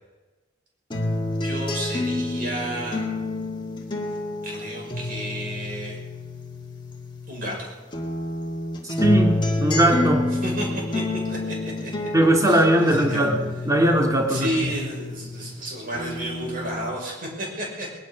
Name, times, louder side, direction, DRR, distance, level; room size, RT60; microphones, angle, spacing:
sound 1, 0.9-7.6 7.9-15.6 15.9-16.9, left 2 dB, 25° left, 2.1 m, -29 dB
voice 1, 1.4-3.0 4.4-6.0 7.3-7.7 10.4-11.6 11.8-12.1 12.4-13.3 14.3-17.9, right 1 dB, 45° right, -1 dB, 5.8 m, -31 dB
voice 2, 9.0-10.3 12.1-13.4 13.7-14.7, right 1 dB, 15° right, 1 dB, 2.2 m, -19 dB
20.0 x 11.5 x 6.2 m, 1.2 s
head